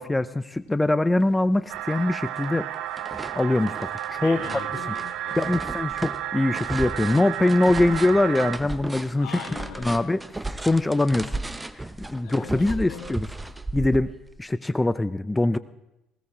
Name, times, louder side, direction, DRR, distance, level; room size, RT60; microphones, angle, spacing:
voice 1, 0.0-2.7 3.4-3.8 4.1-4.4 5.4-9.3 9.8-10.2 10.6-11.3 11.7-13.3 13.7-14.1 14.4-15.6, left 2 dB, 15° left, 15 dB, 0.6 m, -23 dB
sound 1, 1.3-1.4 1.7-2.5 2.7-14.4, right 2 dB, 15° right, 0.9 m, -35 dB
sound 2, 1.7-8.6, right 11 dB, 65° right, 0.9 m, -32 dB
voice 2, 4.2-5.6 9.2-10.1 12.2-13.1, left 7 dB, 70° left, 2 dB, 2.5 m, -40 dB
19.5 x 16.5 x 3.8 m, 0.94 s
hypercardioid pair, 55°, 0 cm